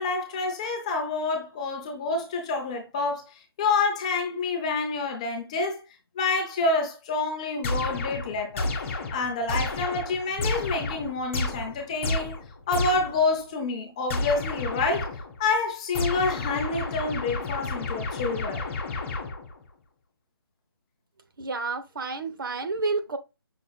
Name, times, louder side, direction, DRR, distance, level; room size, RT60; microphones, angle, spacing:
voice 1, 0.0-5.8 6.2-8.7 9.1-12.4 12.7-18.6, left 3 dB, 15° left, 0.5 m, -28 dB
sound 1, 7.6-13.3 14.1-15.4 15.9-19.6, left 2 dB, 30° left, 1.1 m, -31 dB
voice 2, 21.4-23.2, right 3 dB, 60° right, 0.8 m, -30 dB
5.8 x 3.6 x 2.3 m
hypercardioid pair, 165°, 13 cm